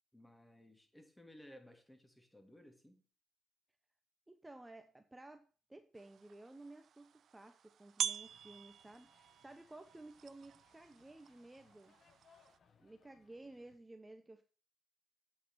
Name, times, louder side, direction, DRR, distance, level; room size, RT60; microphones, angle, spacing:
voice 1, 0.1-3.0, left 1 dB, 10° left, 2.9 m, -59 dB
voice 2, 4.3-11.9 12.8-14.4, right 2 dB, 15° right, 1.0 m, -55 dB
sound 1, 5.9-12.6, right 8 dB, 60° right, 0.4 m, -46 dB
sound 2, 8.2-13.8, left 6 dB, 55° left, 1.6 m, -71 dB
8.6 x 6.8 x 6.4 m
hypercardioid pair, 45°, 0 cm